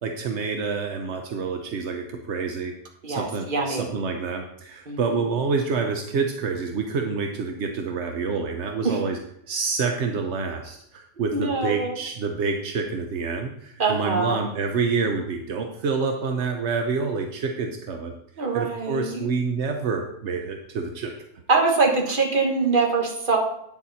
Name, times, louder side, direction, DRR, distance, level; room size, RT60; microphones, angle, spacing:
voice 1, 0.0-2.7 3.1-9.2 9.5-18.1 18.5-21.1, right 5 dB, 80° right, 4 dB, 1.1 m, -27 dB
voice 2, 3.0-3.9 4.9-5.2 8.8-9.0 11.3-11.9 13.8-14.4 18.4-19.3 21.5-23.4, right 4 dB, 50° right, 1 dB, 1.7 m, -23 dB
8.9 x 7.1 x 4.1 m, 0.75 s
omnidirectional pair, 1.1 m